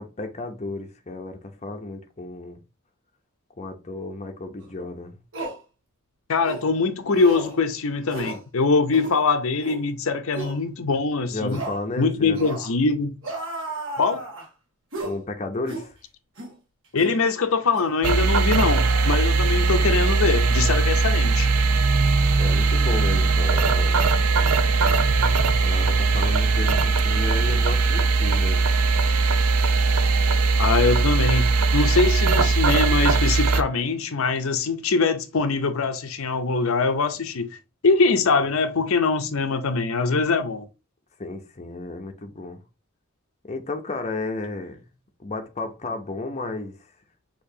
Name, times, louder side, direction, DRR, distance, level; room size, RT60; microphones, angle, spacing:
voice 1, 0.0-2.6 3.6-5.2 11.3-12.6 15.0-15.9 22.4-24.1 25.6-28.7 41.2-42.6 43.4-44.8 45.2-46.9, left 2 dB, 30° left, 0.7 m, -33 dB
sound 1, 4.6-4.7 5.3-5.6 6.4-6.7 7.1-7.6 8.1-8.4 8.9-9.2 9.6-9.8 10.3-10.6 11.5-11.8 12.3-12.7 13.2-14.5 14.9-15.2 15.7-15.9 16.4-16.5 17.0-17.2 17.7-17.9 18.6-19.6 19.9-20.1, right 2 dB, 60° right, 1.9 m, -34 dB
voice 2, 6.3-11.6 12.0-13.2 14.0-14.3 16.9-21.5 30.6-31.5 31.7-37.5 37.8-40.6, left 4 dB, 70° left, 0.7 m, -23 dB
sound 2, 18.0-33.6, right 4 dB, 85° right, 0.6 m, -20 dB
6.6 x 2.9 x 2.8 m
head